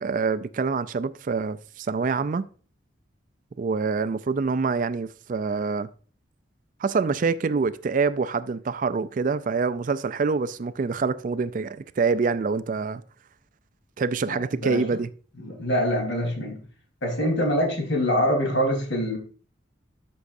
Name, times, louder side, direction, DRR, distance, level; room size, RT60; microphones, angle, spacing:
voice 1, 0.0-2.4 3.6-5.9 6.8-13.0 14.0-15.1, right 4 dB, 45° right, 0.4 m, -26 dB
voice 2, 14.3-14.8 15.4-16.6 17.0-19.2, equal, 70° left, 3.8 m, -25 dB
13.0 x 6.2 x 2.6 m
head